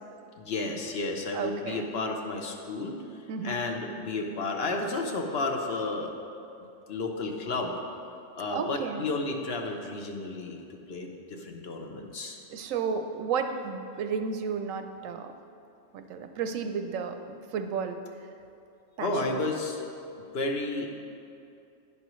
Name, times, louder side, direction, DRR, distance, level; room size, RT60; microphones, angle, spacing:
voice 1, 0.4-3.0 3.4-6.1 6.9-7.8 8.4-12.4 19.0-19.8 20.3-20.9, left 2 dB, 55° left, 3 dB, 1.0 m, -32 dB
voice 2, 1.3-1.9 3.3-3.6 8.5-9.0 12.5-15.3 15.9-18.0 19.0-19.1, right 6 dB, 85° right, 7 dB, 1.0 m, -32 dB
11.0 x 9.9 x 3.1 m, 2.6 s
omnidirectional pair, 1.3 m